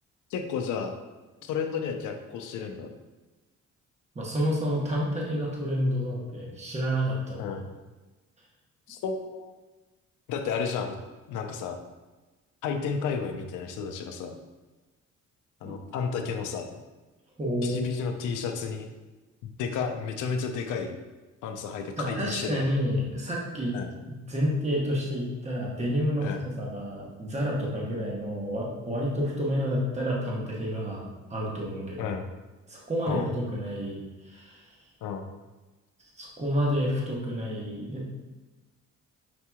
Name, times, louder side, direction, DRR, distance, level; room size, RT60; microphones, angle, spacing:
voice 1, 0.3-0.9 1.4-2.9 7.4-7.7 8.9-9.5 10.3-11.0 11.3-11.8 12.6-14.3 15.6-16.8 17.6-18.9 19.4-21.0 21.4-22.7 23.7-23.9 26.2-26.4 32.0-32.3 33.1-33.3 35.0-35.3, left 6 dB, 85° left, 5 dB, 0.5 m, -32 dB
voice 2, 4.1-7.6 15.6-15.7 17.4-17.9 22.0-23.8 24.1-32.1 32.7-34.8 36.2-38.1, equal, 20° right, -3 dB, 1.0 m, -29 dB
5.9 x 2.8 x 2.3 m, 1.2 s
cardioid pair, 90°, 30 cm